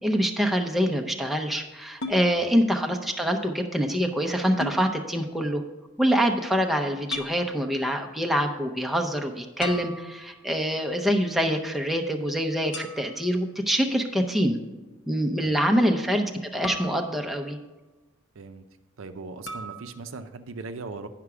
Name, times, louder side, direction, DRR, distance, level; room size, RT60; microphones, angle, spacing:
voice 1, 0.0-5.6 6.0-14.6 15.1-16.3 16.5-17.6, equal, ahead, 3 dB, 0.6 m, -25 dB
sound 1, 2.0-2.2 4.6-4.8 7.1-7.4 9.6-10.5 12.7-13.3 16.6-17.6 19.5-19.8, left 2 dB, 65° left, 0.9 m, -36 dB
voice 2, 15.4-15.9 18.3-18.6 19.0-21.1, right 3 dB, 75° right, 9 dB, 0.5 m, -39 dB
9.6 x 5.8 x 4.8 m, 1.1 s
head